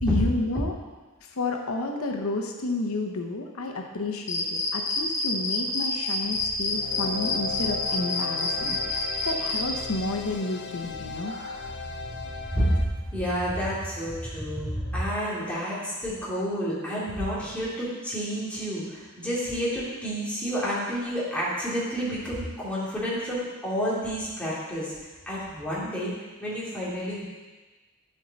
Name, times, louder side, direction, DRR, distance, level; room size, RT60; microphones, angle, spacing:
voice 1, 0.0-0.7 1.4-8.8 9.2-11.3, left 2 dB, 90° left, 3 dB, 0.9 m, -30 dB
sound 1, 4.3-9.6, left 3 dB, 35° left, 1.2 m, -27 dB
sound 2, 6.2-13.1, right 1 dB, 50° right, 2.8 m, -45 dB
Goodbye Until Next Time, 6.6-12.9, left 5 dB, 55° left, 0.6 m, -37 dB
voice 2, 12.5-12.8 13.1-24.9 25.3-26.1 26.4-27.2, equal, 5° left, -8 dB, 2.6 m, -29 dB
12.0 x 5.3 x 4.1 m, 1.3 s
head